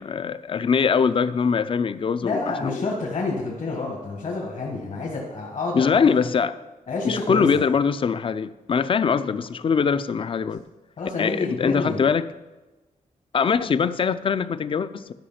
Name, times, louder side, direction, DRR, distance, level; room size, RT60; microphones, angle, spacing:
voice 1, 0.0-2.9 3.7-3.8 5.7-6.6 7.0-10.6 11.2-12.3 13.3-15.1, left 6 dB, 40° left, 14 dB, 0.4 m, -22 dB
voice 2, 2.2-6.1 6.9-7.6 11.0-12.0, left 3 dB, 65° left, -3 dB, 1.5 m, -28 dB
11.5 x 5.0 x 5.7 m, 1.1 s
wide cardioid pair, 105°, 14 cm